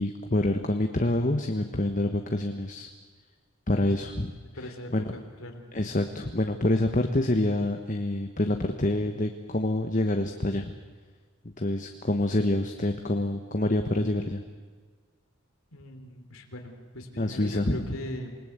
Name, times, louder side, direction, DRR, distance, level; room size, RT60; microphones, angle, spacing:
voice 1, 0.0-2.9 3.7-4.3 4.6-5.1 5.7-10.7 11.6-14.4 17.2-17.8, left 1 dB, 40° left, 5 dB, 1.2 m, -27 dB
voice 2, 4.5-5.6 15.7-18.4, left 1 dB, 85° left, 4 dB, 3.5 m, -39 dB
27.5 x 19.5 x 8.1 m, 1.5 s
head